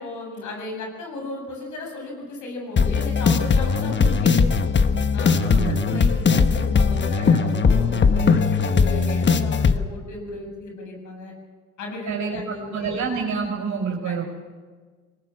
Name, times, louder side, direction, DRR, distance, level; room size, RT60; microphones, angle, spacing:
voice 1, 0.0-4.6 5.1-11.3 11.8-13.0 14.0-14.2, left 2 dB, 75° left, 1 dB, 7.7 m, -35 dB
sound 1, 2.8-9.8, left 5 dB, 40° left, 1.2 m, -19 dB
voice 2, 5.4-6.0 12.1-14.2, right 5 dB, 75° right, 0 dB, 4.9 m, -28 dB
20.5 x 18.5 x 7.3 m, 1.5 s
cardioid pair, 90°, 30 cm